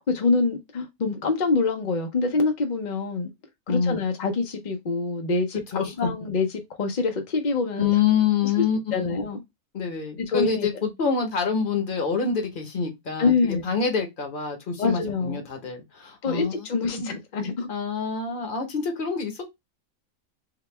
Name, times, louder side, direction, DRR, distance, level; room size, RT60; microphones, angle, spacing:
voice 1, 0.0-3.3 3.7-7.9 8.5-8.6 8.9-9.4 10.2-10.7 13.2-13.6 14.8-15.4 16.2-17.7, left 4 dB, 65° left, 0.4 m, -25 dB
voice 2, 3.7-4.0 5.7-6.1 7.8-8.9 9.7-13.3 13.6-16.7 16.9-17.1 17.7-19.5, left 6 dB, 45° left, 0.8 m, -26 dB
3.9 x 2.2 x 3.1 m
omnidirectional pair, 1.5 m